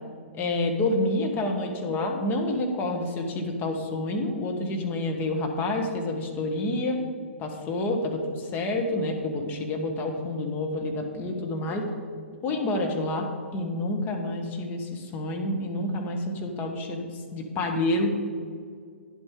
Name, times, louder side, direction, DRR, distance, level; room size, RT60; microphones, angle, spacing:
voice 1, 0.3-7.0 7.4-11.9 12.4-17.1 17.3-18.2, left 2 dB, 25° left, 2 dB, 1.3 m, -28 dB
10.5 x 8.1 x 3.7 m, 2.1 s
hypercardioid pair, 120°, 7 cm